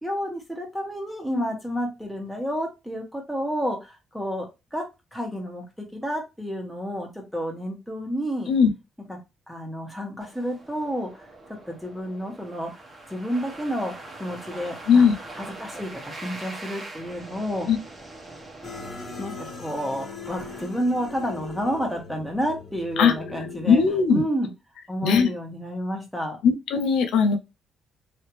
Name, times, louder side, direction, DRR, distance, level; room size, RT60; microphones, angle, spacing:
voice 1, 0.0-4.5 4.7-4.8 5.1-8.5 9.1-9.2 9.5-11.3 11.7-12.7 13.1-13.9 14.2-15.0 15.3-17.7 19.2-23.8 24.1-24.5 24.9-26.4, equal, ahead, 1.5 m, -30 dB
sound 1, 10.2-21.4, right 2 dB, 30° right, 1.2 m, -43 dB
sound 2, 18.6-23.9, left 4 dB, 40° left, 1.4 m, -40 dB
voice 2, 23.7-24.2 25.0-25.3 26.4-27.4, left 6 dB, 85° left, 0.5 m, -19 dB
3.2 x 2.8 x 3.1 m
cardioid pair, 90°, 0 cm